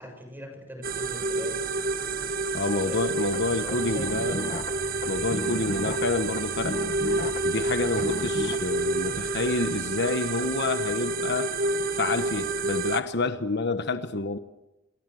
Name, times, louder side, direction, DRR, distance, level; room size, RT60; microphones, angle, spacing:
voice 1, 0.0-1.6 2.7-4.4, equal, 10° right, 6.7 m, -41 dB
sound 1, 0.8-13.0, right 3 dB, 45° right, 1.5 m, -29 dB
voice 2, 2.5-4.4 5.1-6.8 7.4-11.5 12.0-14.4, left 3 dB, 55° left, 1.2 m, -28 dB
sound 2, 3.3-8.6, left 2 dB, 40° left, 1.3 m, -35 dB
29.0 x 22.5 x 7.8 m
head